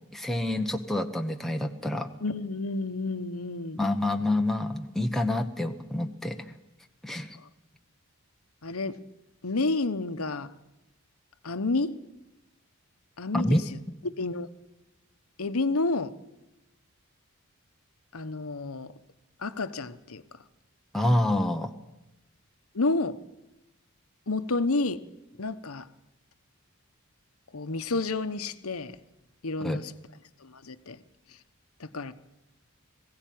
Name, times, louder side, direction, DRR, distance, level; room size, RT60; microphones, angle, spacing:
voice 1, 0.1-2.1 3.8-6.5 7.0-7.3 13.3-13.6 20.9-21.7 29.6-29.8, left 1 dB, ahead, 0.9 m, -27 dB
voice 2, 2.2-3.8 8.6-9.0 9.4-10.5 11.4-11.9 13.2-13.6 14.0-14.5 15.4-16.1 18.1-18.9 19.4-20.2 22.7-23.2 24.3-25.0 25.4-25.9 27.5-29.0 29.4-29.9 30.4-31.0 31.8-32.1, left 3 dB, 80° left, 1.1 m, -30 dB
21.0 x 16.0 x 9.3 m
head